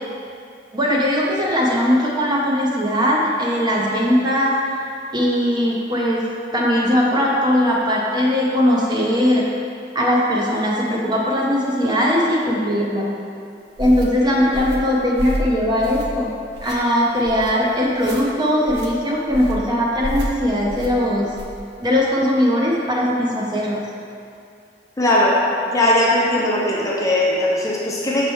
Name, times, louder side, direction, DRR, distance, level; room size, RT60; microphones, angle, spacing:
voice 1, 0.7-4.5 5.1-6.2 6.5-9.5 9.9-13.2 13.8-16.3 16.6-21.3 21.8-23.9, equal, 25° right, -3 dB, 0.7 m, -19 dB
sound 1, 13.8-14.1 14.5-14.8 15.2-15.5 15.8-16.2 16.5-16.8 17.2-17.5 18.0-18.2 18.7-18.9 19.3-19.6 20.0-20.3 20.7-20.9 21.3-21.6, equal, 65° right, 0.7 m, -28 dB
voice 2, 25.0-28.3, left 1 dB, 20° left, -5 dB, 0.8 m, -19 dB
6.5 x 4.5 x 3.6 m, 2.4 s
head